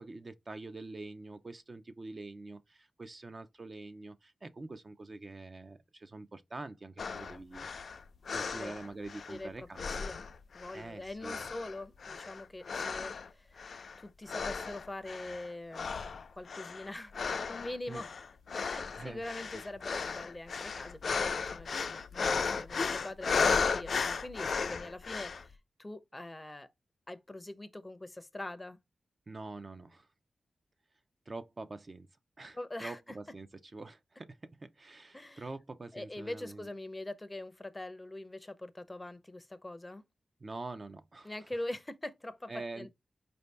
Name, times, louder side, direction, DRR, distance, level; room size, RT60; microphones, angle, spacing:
voice 1, 0.0-7.7 8.3-10.1 10.7-11.4 17.9-18.0 19.0-19.2 19.5-19.6 29.3-30.1 31.3-32.1 32.4-36.7 40.4-41.3 42.5-42.9, right 3 dB, 40° right, 0.5 m, -45 dB
sound 1, 7.0-9.4 9.8-10.9 11.2-13.3 13.6-14.0 14.3-15.5 15.7-25.5, left 5 dB, 65° left, 0.4 m, -35 dB
voice 2, 9.3-10.2 10.5-15.9 16.3-17.1 17.5-18.1 18.5-26.7 27.1-28.8 32.5-33.0 35.1-35.5 35.9-40.0 41.2-42.9, left 1 dB, 20° left, 0.6 m, -43 dB
4.5 x 2.7 x 3.2 m
wide cardioid pair, 95°, 0 cm